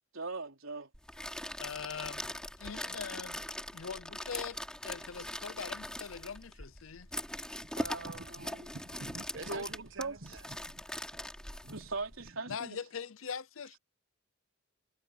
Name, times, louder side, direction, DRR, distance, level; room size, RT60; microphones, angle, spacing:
voice 1, 0.1-0.9 7.8-8.7 9.5-10.2 11.7-12.8, right 3 dB, 85° right, 3.7 m, -40 dB
sound 1, 0.9-12.3, left 1 dB, 5° left, 3.5 m, -41 dB
voice 2, 1.6-3.4 3.7-4.6 4.8-7.1 12.5-13.8, left 6 dB, 90° left, 0.7 m, -42 dB
voice 3, 7.6-11.9 12.2-12.6, right 3 dB, 65° right, 1.6 m, -49 dB
head